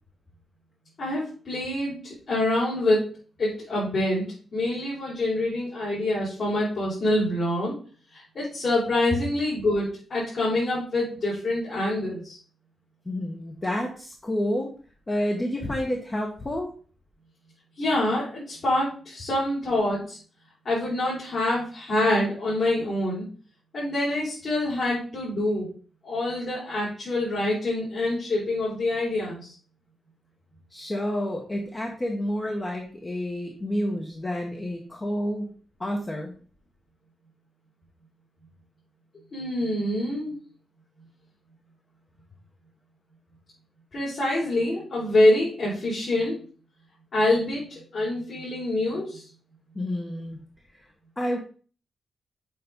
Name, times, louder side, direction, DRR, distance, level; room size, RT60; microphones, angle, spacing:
voice 1, 1.0-3.0 3.4-7.7 8.1-12.4 17.8-20.2 20.6-23.2 23.7-25.7 26.0-29.5 39.3-40.4 43.9-46.4 47.1-49.2, left 1 dB, 55° left, -7 dB, 4.3 m, -26 dB
voice 2, 13.0-14.7 15.1-16.7 30.7-35.5 35.8-36.3 49.7-50.4 50.7-50.8 51.2-51.4, left 1 dB, 20° left, 0 dB, 1.3 m, -29 dB
7.7 x 5.0 x 3.8 m, 0.41 s
wide cardioid pair, 125°, 0 cm